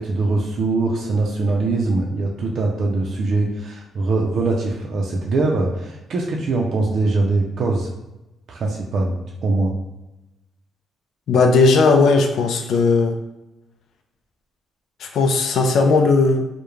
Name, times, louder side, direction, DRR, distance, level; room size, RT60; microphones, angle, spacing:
voice 1, 0.0-7.9 8.5-9.7, right 3 dB, 60° right, -2 dB, 0.4 m, -22 dB
voice 2, 11.3-13.2 15.0-16.4, left 4 dB, 70° left, 4 dB, 0.4 m, -16 dB
2.3 x 2.1 x 3.0 m, 0.98 s
cardioid pair, 90°, 0 cm